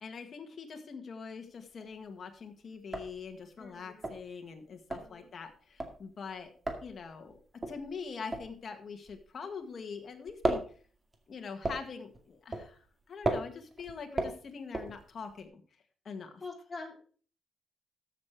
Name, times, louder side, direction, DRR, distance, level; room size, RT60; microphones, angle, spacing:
voice 1, 0.0-6.5 6.8-7.4 7.7-10.6 11.3-12.8 13.1-15.6 16.1-16.4, left 5 dB, 45° left, 5 dB, 2.0 m, -43 dB
sound 1, 1.5-2.1 2.4-2.5 2.8-9.8 10.1-15.4, right 2 dB, 25° right, 2.1 m, -36 dB
voice 2, 3.6-4.0 4.9-5.3 16.4-17.1, left 3 dB, 25° left, 1 dB, 3.5 m, -45 dB
14.0 x 6.9 x 4.8 m, 0.42 s
cardioid pair, 120°, 0 cm